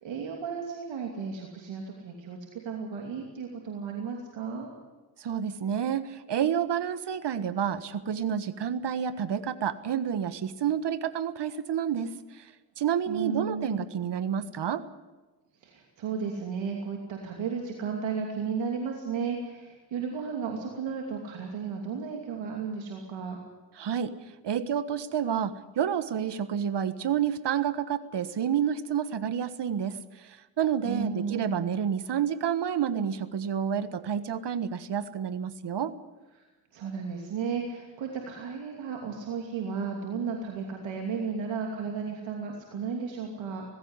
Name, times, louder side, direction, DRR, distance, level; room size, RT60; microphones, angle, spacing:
voice 1, 0.0-4.7 13.1-14.0 15.6-23.4 30.8-31.8 36.3-36.4 36.7-43.6, right 5 dB, 80° right, 1 dB, 2.9 m, -34 dB
voice 2, 5.2-12.1 12.4-12.5 12.8-14.8 23.8-24.1 24.4-30.0 30.6-35.9, right 8 dB, 65° right, 13 dB, 1.5 m, -29 dB
18.5 x 16.0 x 9.7 m, 1.2 s
supercardioid pair, 60°, 45 cm